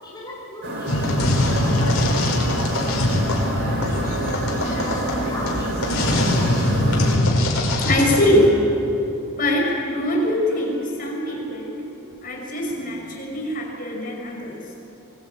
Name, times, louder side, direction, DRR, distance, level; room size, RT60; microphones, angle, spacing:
voice 1, 0.0-2.5 2.8-6.6, left 1 dB, 20° left, -6 dB, 5.2 m, -37 dB
sound 1, 0.6-7.2, right 1 dB, 55° right, 3.9 m, -27 dB
sound 2, 0.9-8.2, left 1 dB, 85° left, 5.3 m, -22 dB
sound 3, 4.7-5.8 6.1-7.9 8.2-9.9 10.3-12.2 12.7-13.3, right 1 dB, 85° right, 3.6 m, -40 dB
voice 2, 7.8-8.5 9.4-11.8 12.2-14.6, left 1 dB, 40° left, -1 dB, 5.8 m, -22 dB
25.0 x 20.5 x 8.8 m, 2.9 s
head